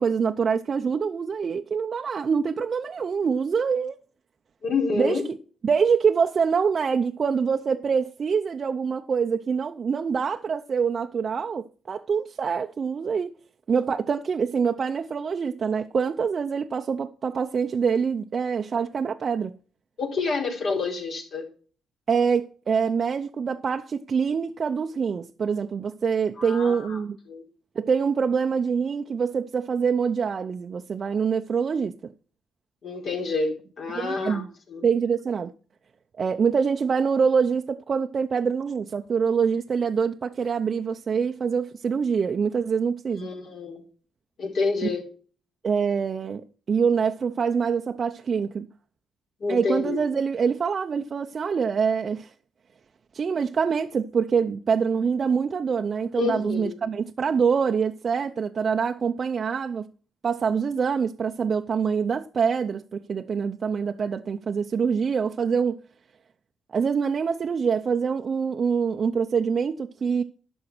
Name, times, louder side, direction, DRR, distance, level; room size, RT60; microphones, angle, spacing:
voice 1, 0.0-4.0 4.9-5.4 5.6-13.3 13.7-19.6 22.1-27.2 27.8-32.0 33.9-34.5 34.8-35.5 36.2-43.3 45.6-48.7 49.5-52.3 53.1-59.9 60.2-65.8 66.7-70.2, right 6 dB, 45° right, 0.6 m, -25 dB
voice 2, 4.6-5.3 20.0-21.4 26.4-27.0 27.3-27.4 32.8-34.8 43.2-43.8 44.4-45.1 49.4-50.0 56.2-56.8, left 4 dB, 60° left, 4.2 m, -28 dB
11.5 x 6.3 x 6.1 m
cardioid pair, 90°, 0 cm